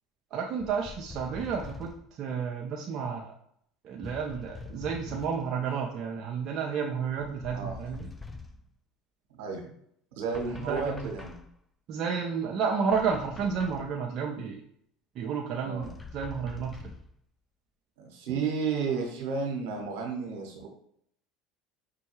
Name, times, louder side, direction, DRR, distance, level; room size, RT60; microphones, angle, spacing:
voice 1, 0.3-3.3 3.8-8.1 10.5-11.1 11.9-14.6 15.2-16.7, right 6 dB, 50° right, 0 dB, 0.5 m, -31 dB
sound 1, 0.6-2.1 4.0-5.5 7.2-8.7 10.3-11.6 12.9-13.9 15.8-17.1, left 4 dB, 20° left, 0.4 m, -44 dB
voice 2, 10.2-11.4 15.6-15.9 18.0-20.7, right 5 dB, 75° right, 1 dB, 1.0 m, -32 dB
5.3 x 2.2 x 3.0 m, 0.69 s
hypercardioid pair, 80°, 0 cm